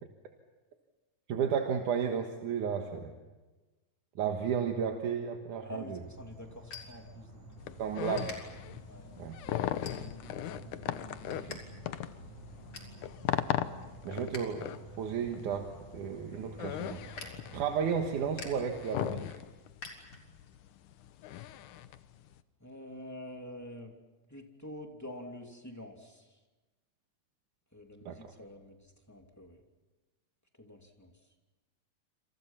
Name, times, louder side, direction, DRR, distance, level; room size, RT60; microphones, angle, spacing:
voice 1, 1.3-3.1 4.2-6.0 7.8-8.4 9.2-9.4 11.3-11.6 14.0-14.7 15.0-19.4 28.1-28.2, right 7 dB, 80° right, 3 dB, 3.0 m, -33 dB
sound 1, 5.6-7.6 8.1-8.4 8.9-9.2 9.8-10.4 10.8-11.6 11.9-12.0 12.3-13.0 13.4-14.5 14.8-20.6, left 4 dB, 55° left, 4.7 m, -49 dB
voice 2, 5.6-7.8 8.9-9.1 22.6-23.9 24.3-26.4 27.7-29.6 30.6-31.1, left 1 dB, 5° left, 2 dB, 2.5 m, -47 dB
Insect / Frog, 6.0-19.2, right 1 dB, 60° right, 8.6 m, -50 dB
sound 2, 7.6-22.3, left 12 dB, 80° left, 2.4 m, -38 dB
29.0 x 27.0 x 5.8 m, 1.2 s
omnidirectional pair, 3.6 m